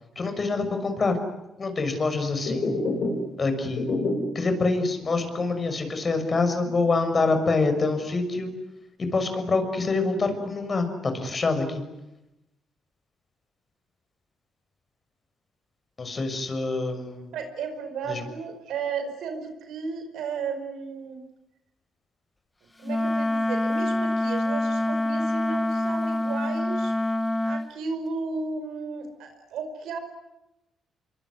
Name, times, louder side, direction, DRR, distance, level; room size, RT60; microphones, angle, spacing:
voice 1, 0.2-1.2 1.6-2.7 3.4-3.9 4.3-8.5 9.0-11.8 16.0-17.3 18.1-18.2, left 3 dB, 40° left, 7 dB, 6.4 m, -26 dB
sound 1, 2.5-3.4 3.6-4.5 4.9-5.0 5.4-5.5 6.0-7.4 7.7-8.4, left 2 dB, 60° left, 7.4 m, -29 dB
voice 2, 17.3-21.2 22.8-26.9 27.4-30.0, right 5 dB, 80° right, 8 dB, 5.2 m, -34 dB
Wind instrument woodwind instrument, 22.8-27.7, left 1 dB, 15° left, 0.9 m, -26 dB
26.0 x 23.5 x 9.7 m, 0.95 s
supercardioid pair, 60°, 0 cm